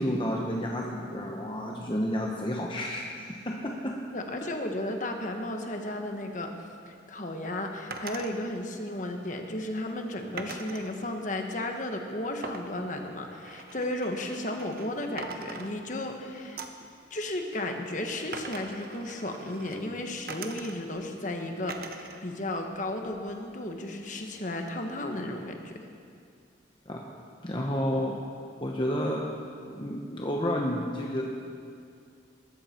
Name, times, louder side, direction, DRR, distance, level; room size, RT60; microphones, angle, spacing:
voice 1, 0.0-4.0 26.9-27.0 27.4-28.2 28.6-29.2 29.7-31.2, equal, 25° left, -1 dB, 1.1 m, -30 dB
voice 2, 4.1-6.5 6.9-16.6 17.1-25.9, left 1 dB, 40° left, 3 dB, 1.4 m, -34 dB
sound 1, 7.9-8.3 10.4-10.9 12.4-14.9 15.2-16.1 16.6-16.9 18.3-19.8 20.3-21.0 21.7-22.2 22.6-23.4, right 4 dB, 50° right, 1.0 m, -42 dB
20.5 x 13.5 x 4.5 m, 2.3 s
head